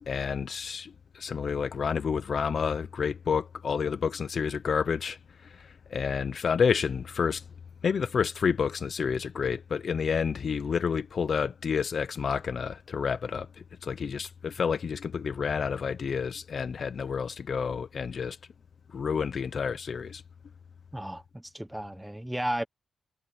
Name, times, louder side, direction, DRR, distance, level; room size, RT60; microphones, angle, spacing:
voice 1, 0.0-7.4 7.8-18.4 18.9-20.2, left 6 dB, 45° left, 0.8 m, -29 dB
voice 2, 20.9-22.6, right 1 dB, 5° right, 1.2 m, -34 dB
wide cardioid pair, 175°, 0 cm